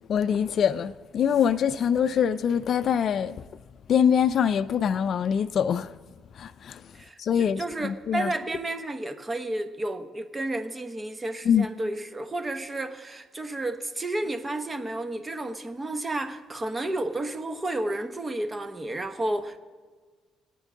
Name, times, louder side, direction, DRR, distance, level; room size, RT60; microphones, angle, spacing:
voice 1, 0.1-3.5 3.9-6.0 6.3-8.3 11.4-11.7, left 8 dB, 60° left, 0.4 m, -24 dB
voice 2, 6.9-19.6, right 2 dB, 25° right, 1.0 m, -31 dB
22.0 x 9.1 x 3.7 m
cardioid pair, 90°, 0 cm